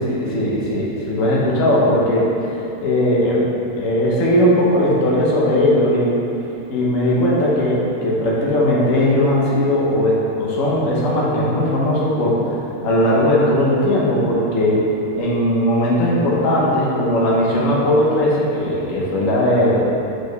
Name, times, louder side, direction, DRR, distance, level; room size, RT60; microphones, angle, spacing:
voice 1, 0.0-6.2 6.7-12.6 12.8-14.8 15.2-20.1, left 1 dB, 60° left, -5 dB, 1.3 m, -18 dB
4.9 x 4.8 x 4.6 m, 2.9 s
omnidirectional pair, 1.6 m